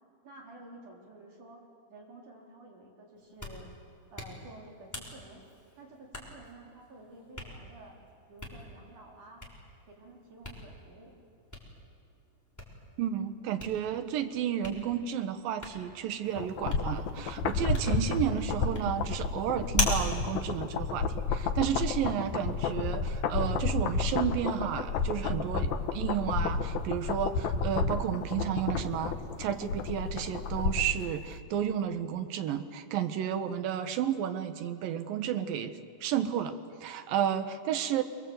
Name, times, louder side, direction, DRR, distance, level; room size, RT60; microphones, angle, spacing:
voice 1, 0.2-1.6 1.9-3.7 4.1-5.4 5.8-8.0 8.3-9.4 9.9-11.1, right 2 dB, 55° right, -2 dB, 5.2 m, -51 dB
Hands, 3.2-21.7, left 2 dB, 5° left, 3.4 m, -41 dB
voice 2, 13.0-35.7 36.0-36.5 36.8-38.0, right 9 dB, 75° right, 9 dB, 2.7 m, -32 dB
sound 1, 16.4-31.0 31.3-31.4, left 4 dB, 65° left, 2.1 m, -31 dB
26.0 x 22.0 x 7.9 m, 2.3 s
omnidirectional pair, 4.3 m